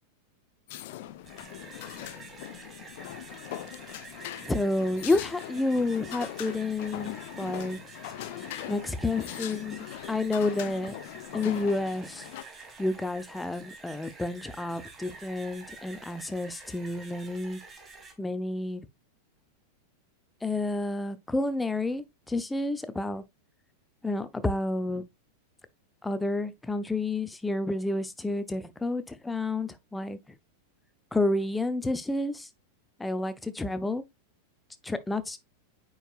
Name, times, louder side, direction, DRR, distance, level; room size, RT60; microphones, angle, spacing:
sound 1, 0.7-12.4, left 13 dB, 50° left, 0.7 m, -41 dB
sound 2, 1.1-18.1, right 4 dB, 20° right, 1.9 m, -48 dB
voice 1, 4.4-7.8 8.7-10.9 11.3-12.3 12.8-17.6 18.2-18.8 20.4-23.2 24.0-25.0 26.0-30.2 31.1-32.5 33.0-34.0 34.8-35.4, left 2 dB, 10° left, 0.7 m, -30 dB
8.9 x 4.8 x 2.4 m
figure-of-eight pair, 90°, 0 cm